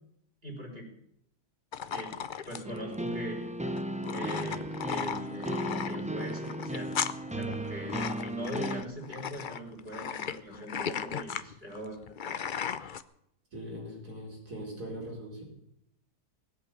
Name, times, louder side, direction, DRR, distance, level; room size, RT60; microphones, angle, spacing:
voice 1, 0.4-0.9 1.9-2.1 2.5-3.4 4.1-6.9 7.3-12.4, equal, 40° right, 0 dB, 4.9 m, -41 dB
sound 1, 1.7-13.0, left 7 dB, 55° left, 0.5 m, -36 dB
sound 2, 2.6-8.8, right 1 dB, 10° right, 0.5 m, -35 dB
voice 2, 13.5-15.4, equal, 85° right, 0 dB, 4.8 m, -41 dB
19.0 x 8.3 x 8.4 m, 0.75 s
omnidirectional pair, 1.6 m